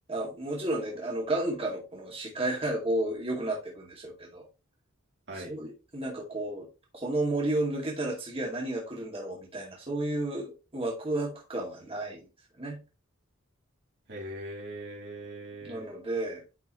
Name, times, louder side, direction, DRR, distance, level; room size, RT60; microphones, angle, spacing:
voice 1, 0.1-4.5 5.3-6.7 6.9-12.3 12.5-12.8 15.6-16.4, right 1 dB, 30° right, -2 dB, 2.3 m, -32 dB
voice 2, 14.1-15.8, right 1 dB, 55° right, -2 dB, 3.8 m, -40 dB
10.5 x 4.7 x 3.1 m, 0.29 s
head